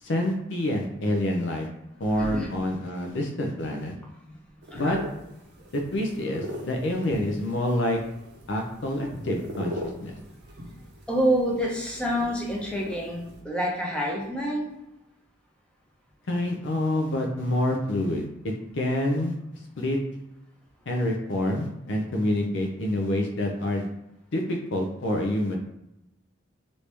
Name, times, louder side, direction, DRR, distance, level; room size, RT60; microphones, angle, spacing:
voice 1, 0.0-1.7 2.0-3.9 4.7-5.0 5.7-8.0 8.5-10.2 16.3-19.3 19.8-20.0 20.9-23.9 24.3-25.6, left 1 dB, 65° left, 2 dB, 0.5 m, -27 dB
voice 2, 2.2-2.5 4.7-5.0 7.1-7.2 11.1-14.7, equal, 5° left, -3 dB, 0.6 m, -27 dB
sound 1, 4.6-13.4, equal, 55° right, 0.7 m, -41 dB
3.1 x 2.6 x 3.3 m, 0.87 s
head